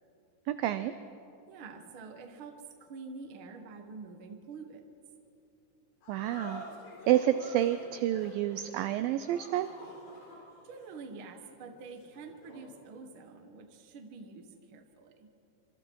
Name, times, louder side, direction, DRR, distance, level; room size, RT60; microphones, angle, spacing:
voice 1, 0.5-0.9 6.1-6.6 7.1-9.7, right 12 dB, 85° right, 12 dB, 2.0 m, -29 dB
voice 2, 1.5-4.8 10.6-15.3, right 4 dB, 55° right, 5 dB, 1.4 m, -47 dB
sound 1, 6.0-12.7, left 2 dB, 85° left, 6.2 m, -49 dB
26.0 x 25.5 x 4.7 m, 2.8 s
omnidirectional pair, 4.8 m